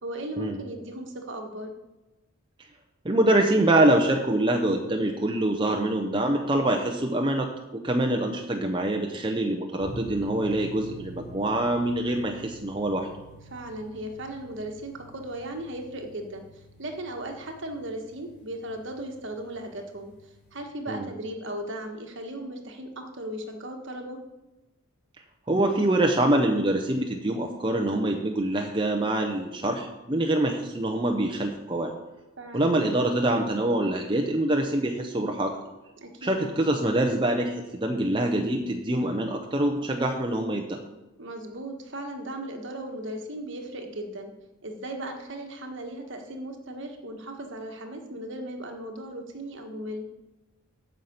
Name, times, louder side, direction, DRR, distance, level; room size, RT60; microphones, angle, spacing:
voice 1, 0.0-1.7 7.8-8.3 13.5-20.1 20.5-24.2 32.4-32.8 36.0-36.4 41.2-44.3 44.6-50.1, right 1 dB, 55° right, 4 dB, 1.5 m, -37 dB
voice 2, 3.0-13.1 20.9-21.1 25.5-31.9 32.5-35.6 36.2-40.8, right 1 dB, 20° right, 2 dB, 0.7 m, -25 dB
sound 1, 9.8-20.6, equal, 35° left, 2.5 m, -47 dB
9.1 x 5.8 x 7.9 m, 1.1 s
head